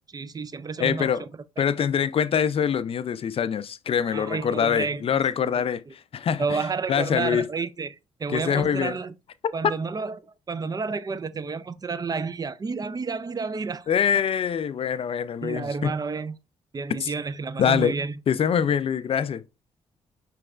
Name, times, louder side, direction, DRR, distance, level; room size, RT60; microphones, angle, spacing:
voice 1, 0.1-1.3 1.6-1.7 4.1-5.2 5.5-5.6 6.4-9.1 9.5-10.2 10.5-13.9 15.4-16.4 16.7-18.2, right 4 dB, 30° right, 0.4 m, -30 dB
voice 2, 0.8-1.3 1.6-6.6 6.9-7.5 8.3-9.0 13.9-15.9 17.0-17.1 17.6-17.9 18.3-19.4, left 8 dB, 45° left, 0.4 m, -24 dB
4.8 x 3.1 x 2.4 m
hypercardioid pair, 50°, 14 cm